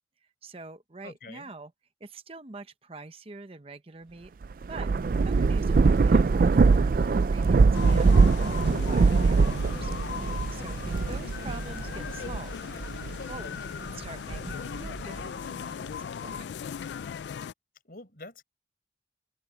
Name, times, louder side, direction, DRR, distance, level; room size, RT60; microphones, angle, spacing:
voice 1, 0.4-1.7 2.0-4.3 4.7-4.9 5.2-9.9 10.2-12.5 12.8-16.5, right 3 dB, 35° right, 0.8 m, -45 dB
voice 2, 1.0-1.5 11.2-11.3 17.8-18.4, left 2 dB, 55° left, 5.7 m, -46 dB
Thunder / Rain, 4.4-13.3 13.9-15.2, right 4 dB, 50° right, 0.4 m, -23 dB
sound 1, 7.7-17.5, left 7 dB, 75° left, 0.3 m, -38 dB
open air
head